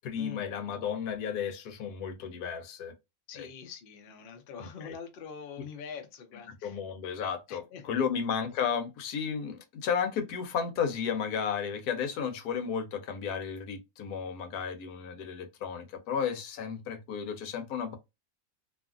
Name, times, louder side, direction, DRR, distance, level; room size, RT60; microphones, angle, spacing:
voice 1, 0.0-2.9 3.3-3.5 4.6-4.9 6.6-18.0, left 7 dB, 90° left, 1.2 m, -33 dB
voice 2, 3.3-6.8 7.5-8.1, left 6 dB, 55° left, 0.6 m, -44 dB
2.8 x 2.4 x 2.4 m
omnidirectional pair, 1.6 m